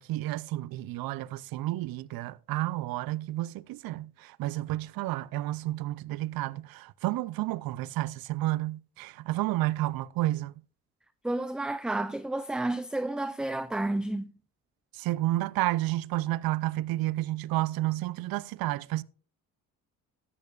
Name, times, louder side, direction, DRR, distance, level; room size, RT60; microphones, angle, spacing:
voice 1, 0.0-10.6 14.9-19.0, right 16 dB, 80° right, 0.5 m, -31 dB
voice 2, 11.2-14.3, right 2 dB, ahead, 0.4 m, -31 dB
13.5 x 11.0 x 2.4 m
cardioid pair, 95°, 35 cm